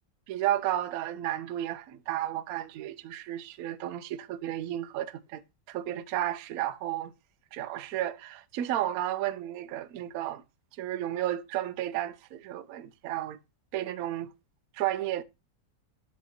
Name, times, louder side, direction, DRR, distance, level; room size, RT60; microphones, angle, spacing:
voice 1, 0.3-5.4 5.7-7.1 7.5-10.4 10.8-13.4 13.7-14.3 14.7-15.2, right 13 dB, 70° right, 0.9 m, -32 dB
7.2 x 6.5 x 2.9 m
omnidirectional pair, 2.0 m